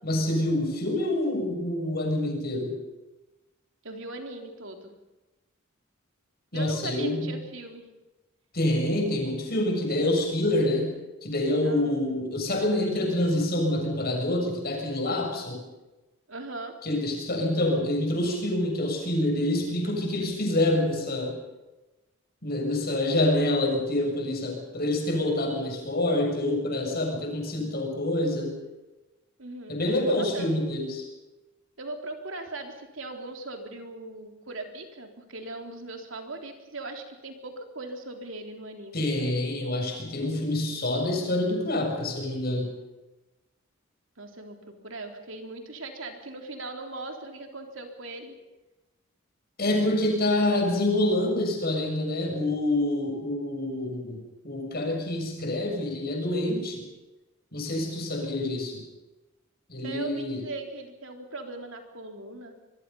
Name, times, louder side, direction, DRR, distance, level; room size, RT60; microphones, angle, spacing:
voice 1, 0.0-2.8 6.5-7.4 8.5-10.9 11.2-15.6 16.8-21.4 22.4-28.6 29.7-31.1 38.9-42.7 49.6-56.8 57.5-58.8 59.7-60.4, left 1 dB, 50° left, 2 dB, 7.0 m, -27 dB
voice 2, 3.8-5.0 6.5-7.9 11.6-12.0 16.3-16.7 29.4-29.8 30.2-30.6 31.8-39.0 44.2-48.4 59.8-62.6, right 2 dB, 70° right, 4 dB, 3.7 m, -39 dB
25.5 x 22.5 x 5.6 m, 1.1 s
head